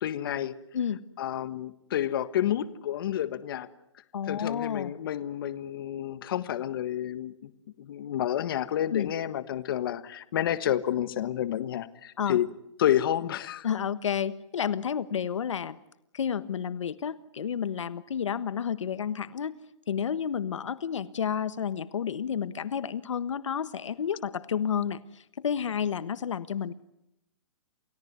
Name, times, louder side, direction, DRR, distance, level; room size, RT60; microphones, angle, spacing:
voice 1, 0.0-0.6 1.2-3.7 4.3-7.5 7.8-12.5 12.8-13.7, left 11 dB, 50° left, 13 dB, 1.5 m, -29 dB
voice 2, 4.1-4.9 8.9-9.1 12.2-12.4 13.6-15.8 16.1-19.6 19.9-26.7, left 8 dB, 75° left, 15 dB, 1.3 m, -31 dB
29.0 x 17.0 x 9.6 m, 0.82 s
hypercardioid pair, 165°, 16 cm